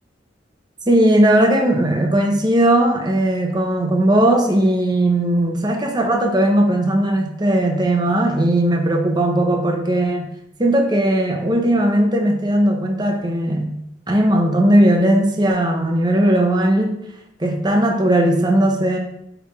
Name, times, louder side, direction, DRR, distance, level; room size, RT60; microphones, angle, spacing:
voice 1, 0.9-10.3 10.6-13.8 14.1-17.0 17.4-19.0, right 1 dB, 20° right, 2 dB, 0.9 m, -17 dB
8.5 x 3.5 x 3.6 m, 0.79 s
head